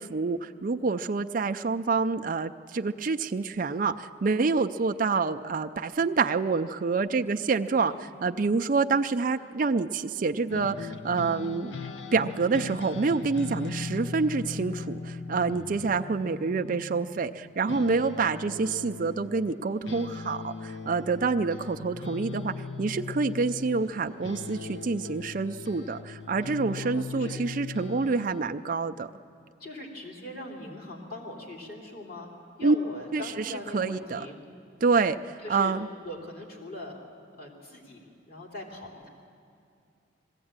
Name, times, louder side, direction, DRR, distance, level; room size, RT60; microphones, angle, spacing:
voice 1, 0.0-11.8 12.1-29.1 32.6-32.8 33.1-34.3 34.8-35.9, right 4 dB, 45° right, 7 dB, 0.4 m, -27 dB
sound 1, 10.5-17.4 17.7-28.4, left 3 dB, 70° left, 0.7 m, -39 dB
voice 2, 26.7-27.4 29.6-32.3 32.6-34.4 35.4-35.7 36.0-37.0 37.4-39.1, left 1 dB, 50° left, -1 dB, 3.0 m, -41 dB
20.5 x 16.0 x 8.8 m, 2.4 s
head